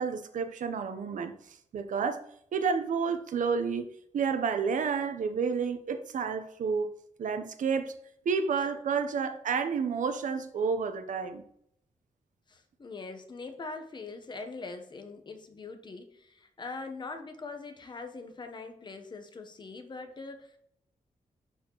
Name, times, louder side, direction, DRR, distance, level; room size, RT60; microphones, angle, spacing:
voice 1, 0.0-2.2 2.5-6.9 7.2-8.0 8.2-11.4, right 5 dB, 80° right, 0.8 m, -30 dB
voice 2, 12.5-20.6, left 3 dB, 35° left, 1.0 m, -42 dB
11.0 x 4.3 x 3.0 m
wide cardioid pair, 165°, 13 cm